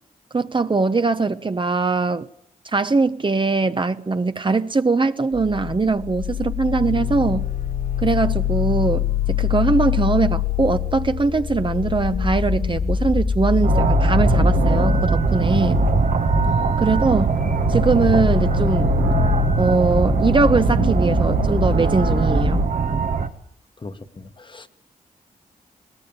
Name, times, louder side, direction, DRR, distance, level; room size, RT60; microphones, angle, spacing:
voice 1, 0.3-2.3 2.7-7.5 8.0-15.8 16.8-17.3 17.7-18.9 19.6-22.6, right 3 dB, 35° right, 1.0 m, -21 dB
sound 1, 5.3-22.7, left 6 dB, 80° left, 2.1 m, -24 dB
sound 2, 6.6-20.3, left 2 dB, 55° left, 2.2 m, -35 dB
sound 3, 13.6-23.3, right 5 dB, 60° right, 1.7 m, -21 dB
voice 2, 23.8-24.7, left 3 dB, 35° left, 1.5 m, -40 dB
21.0 x 18.5 x 9.0 m
cardioid pair, 55°, 15 cm